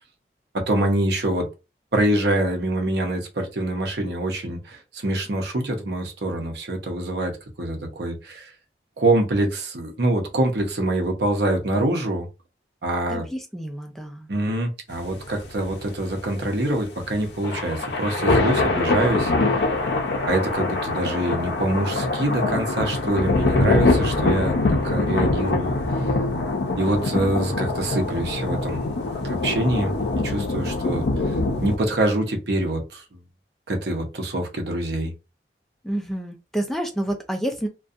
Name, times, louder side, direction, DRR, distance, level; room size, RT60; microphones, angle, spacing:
voice 1, 0.5-1.5 1.9-8.5 9.0-12.3 12.8-13.3 14.3-19.3 20.3-25.8 26.8-28.8 29.2-29.9 30.2-31.3 31.6-33.2 33.7-35.1, right 1 dB, 70° right, 0.7 m, -25 dB
voice 2, 13.1-14.3 35.8-37.7, right 1 dB, ahead, 0.4 m, -29 dB
sound 1, 14.9-31.8, left 2 dB, 75° left, 0.6 m, -23 dB
2.6 x 2.2 x 2.4 m
head